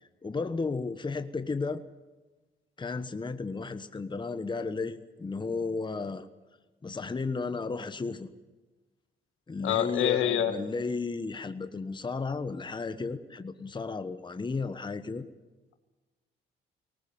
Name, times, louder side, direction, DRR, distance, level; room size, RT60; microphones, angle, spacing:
voice 1, 0.2-1.8 2.8-6.3 6.8-8.3 9.5-15.2, left 4 dB, 25° left, 10 dB, 1.2 m, -33 dB
voice 2, 9.6-10.5, left 11 dB, 80° left, 7 dB, 2.3 m, -26 dB
19.5 x 18.5 x 8.7 m, 1.2 s
cardioid pair, 90°, 20 cm